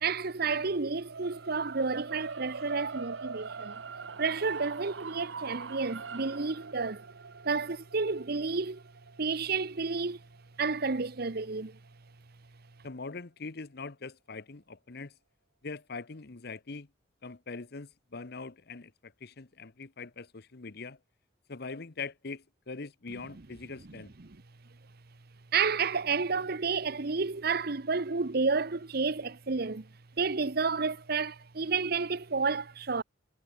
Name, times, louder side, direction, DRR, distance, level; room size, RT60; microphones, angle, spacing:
voice 1, 0.0-3.8 4.2-7.0 7.4-8.8 9.2-10.2 10.6-11.8 25.5-29.9 30.2-33.0, right 4 dB, 55° right, 1.0 m, -30 dB
sound 1, 1.0-11.2, right 5 dB, 80° right, 0.9 m, -43 dB
voice 2, 12.8-15.1 15.6-16.9 17.2-21.0 21.5-24.1, left 4 dB, 60° left, 1.0 m, -42 dB
head